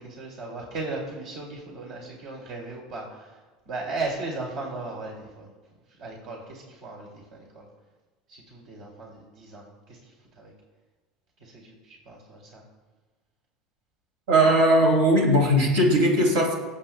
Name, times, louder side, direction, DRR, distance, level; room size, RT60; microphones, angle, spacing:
voice 1, 0.0-3.4 3.7-5.5 5.9-7.7 8.3-10.5 11.4-12.6, right 3 dB, 60° right, -2 dB, 2.4 m, -37 dB
voice 2, 14.3-16.5, right 1 dB, 80° right, 0 dB, 2.9 m, -19 dB
23.0 x 7.8 x 2.2 m, 1.3 s
supercardioid pair, 100°, 0 cm